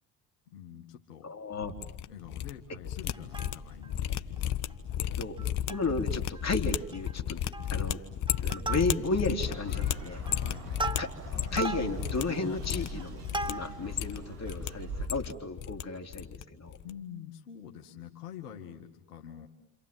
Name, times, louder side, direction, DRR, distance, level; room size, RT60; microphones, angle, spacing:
voice 1, 0.5-1.3 2.1-4.3 10.3-10.7 16.8-19.5, left 9 dB, 85° left, 3 dB, 2.1 m, -46 dB
voice 2, 1.2-1.8 5.0-5.4 5.7-7.4 7.7-10.2 11.0-13.2 13.5-16.8, left 3 dB, 35° left, 5 dB, 3.6 m, -33 dB
sound 1, 1.6-2.5 2.8-11.7 12.0-12.2 12.6-13.5 13.9-14.7 15.0-15.8 16.1-16.4 16.7-16.9, left 11 dB, 60° left, 1.5 m, -33 dB
Plucked string instrument, 3.1-3.9 4.4-4.5 4.7-4.9 5.4-6.0 6.3-6.5 6.8-7.2 7.5-7.9 8.3-9.3 9.8-14.0 14.5-14.6, right 3 dB, 10° right, 1.7 m, -38 dB
sound 2, 9.4-15.1, right 3 dB, 90° right, 2.7 m, -43 dB
29.0 x 27.0 x 7.7 m, 0.77 s
hypercardioid pair, 55°, 45 cm